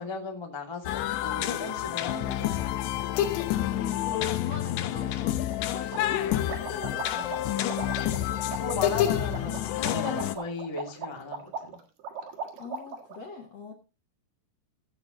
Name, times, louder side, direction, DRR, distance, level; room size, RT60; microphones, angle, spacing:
voice 1, 0.0-2.8 8.6-11.8, left 3 dB, 15° left, 0 dB, 0.8 m, -36 dB
sound 1, 0.9-10.4, left 12 dB, 80° left, 3.1 m, -29 dB
voice 2, 3.5-7.8 12.6-13.7, left 5 dB, 55° left, 2 dB, 1.9 m, -41 dB
sound 2, 5.1-5.2 5.5-5.6 5.9-13.2, right 5 dB, 60° right, 3.1 m, -38 dB
15.0 x 7.9 x 3.8 m, 0.30 s
omnidirectional pair, 5.1 m